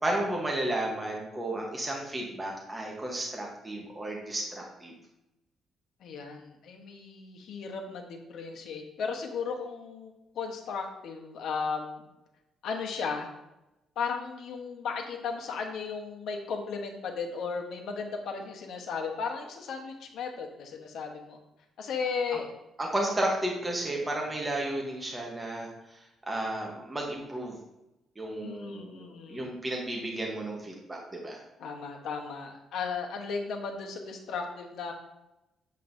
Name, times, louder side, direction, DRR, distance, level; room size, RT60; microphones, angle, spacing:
voice 1, 0.0-4.9 22.3-22.4 22.8-26.0 26.3-27.6 28.2-31.4, right 1 dB, 15° right, -1 dB, 1.0 m, -33 dB
voice 2, 6.0-12.0 12.6-13.3 14.0-21.4 21.8-22.5 28.4-29.5 31.6-34.9, left 5 dB, 65° left, 3 dB, 1.1 m, -35 dB
7.7 x 5.3 x 2.6 m, 0.93 s
cardioid pair, 155°, 0 cm